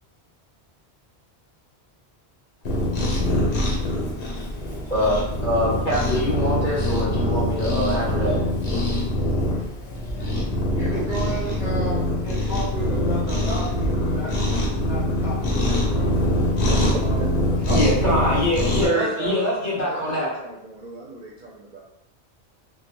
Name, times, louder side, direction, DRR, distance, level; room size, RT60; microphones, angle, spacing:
Cat, 2.6-18.9, left 1 dB, 80° left, 1.1 m, -23 dB
voice 1, 4.9-8.4 17.7-20.3, left 1 dB, 45° left, -8 dB, 1.4 m, -24 dB
voice 2, 10.6-16.3 17.0-17.6, right 1 dB, 5° right, -8 dB, 0.5 m, -34 dB
voice 3, 16.7-17.0 17.7-17.8 18.7-19.4 19.7-21.8, right 4 dB, 55° right, -4 dB, 0.6 m, -31 dB
3.1 x 2.2 x 2.9 m, 0.83 s
omnidirectional pair, 1.1 m